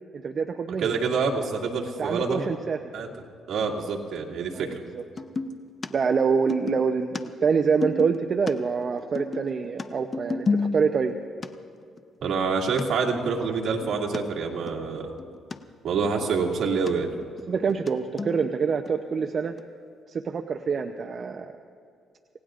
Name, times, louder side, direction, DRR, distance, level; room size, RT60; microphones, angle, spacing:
voice 1, 0.1-0.9 2.0-2.8 4.5-5.0 5.9-11.2 17.5-19.6 20.1-21.5, right 5 dB, 45° right, 5 dB, 0.7 m, -26 dB
voice 2, 0.8-2.4 2.9-3.1 3.5-4.8 12.2-15.1 15.8-17.1, right 5 dB, 65° right, -2 dB, 2.4 m, -26 dB
sound 1, 5.2-5.5 5.8-5.9 6.2-8.5 8.8-11.1 11.4-11.5 12.0-12.1 12.5-12.6 12.8-12.9 13.1-14.2 14.7-14.8 15.0-15.6 15.9-16.9 17.2-17.9 18.2-18.5 18.9-19.0 19.6-19.7, left 4 dB, 35° left, 0.8 m, -31 dB
27.0 x 18.0 x 2.5 m, 2.4 s
cardioid pair, 90°, 0 cm